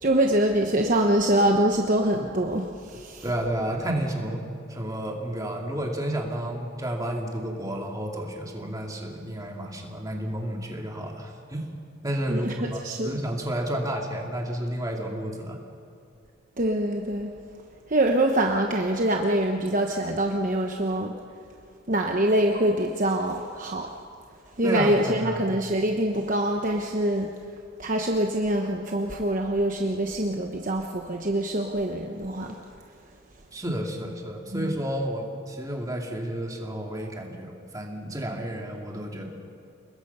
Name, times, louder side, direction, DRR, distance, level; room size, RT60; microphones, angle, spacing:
voice 1, 0.0-3.2 12.3-13.2 16.6-17.3 17.9-21.1 21.9-23.9 24.6-27.3 27.8-32.6 34.5-34.6, right 1 dB, 40° right, 2 dB, 1.1 m, -24 dB
voice 2, 3.2-11.6 12.0-15.6 24.6-25.5 33.5-39.3, right 1 dB, 15° right, 0 dB, 2.6 m, -31 dB
29.5 x 20.5 x 5.7 m, 2.4 s
head